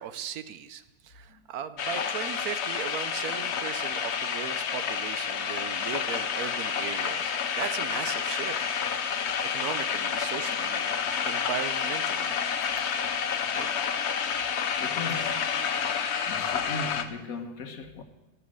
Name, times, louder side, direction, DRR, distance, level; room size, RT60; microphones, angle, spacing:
voice 1, 0.0-8.8 9.2-12.4 13.5-13.7, right 9 dB, 75° right, 1.2 m, -37 dB
sound 1, 1.8-17.0, left 7 dB, 55° left, 0.9 m, -29 dB
voice 2, 14.8-15.5 16.2-18.0, left 3 dB, 70° left, 1.5 m, -38 dB
18.5 x 6.4 x 7.8 m
omnidirectional pair, 1.6 m